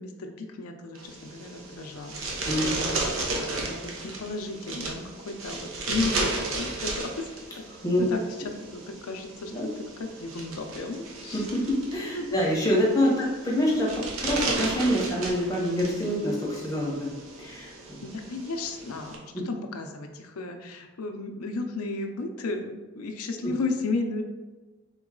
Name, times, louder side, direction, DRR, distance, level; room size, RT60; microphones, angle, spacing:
voice 1, 0.0-2.2 2.6-7.3 7.5-7.6 8.1-11.4 12.1-12.5 18.0-24.2, left 3 dB, 85° left, 4 dB, 0.5 m, -34 dB
sound 1, 1.0-19.2, right 2 dB, 70° right, 0.8 m, -35 dB
voice 2, 11.3-17.7, equal, 15° left, -4 dB, 0.9 m, -26 dB
3.9 x 3.0 x 3.7 m, 1.2 s
head